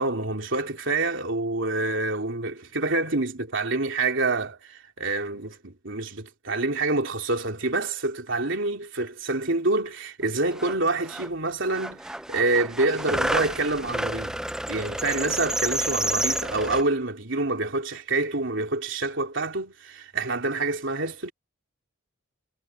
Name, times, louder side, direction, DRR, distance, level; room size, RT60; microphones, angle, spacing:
voice 1, 0.0-14.4 14.7-21.3, right 2 dB, 60° right, 3.6 m, -27 dB
sound 1, 10.2-10.3 10.5-11.3 11.7-16.8, right 1 dB, 5° right, 0.4 m, -30 dB
head